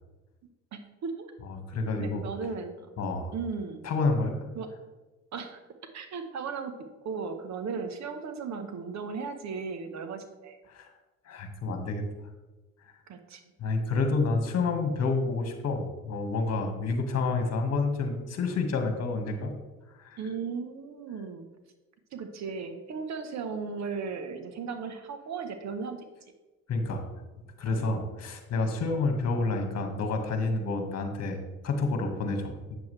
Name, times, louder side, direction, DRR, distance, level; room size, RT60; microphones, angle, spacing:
voice 1, 0.7-1.3 2.0-2.9 3.3-3.9 4.5-4.7 5.3-5.6 5.9-10.6 13.1-13.4 20.2-21.5 22.1-26.1, right 5 dB, 50° right, 8 dB, 1.1 m, -36 dB
voice 2, 1.5-2.2 3.0-3.3 3.8-4.4 10.7-10.9 11.3-12.0 13.6-19.5 20.0-20.2 26.7-27.1 27.6-31.4 31.6-32.7, left 3 dB, 45° left, 5 dB, 1.7 m, -29 dB
8.3 x 7.1 x 3.3 m, 1.1 s
supercardioid pair, 80°, 35 cm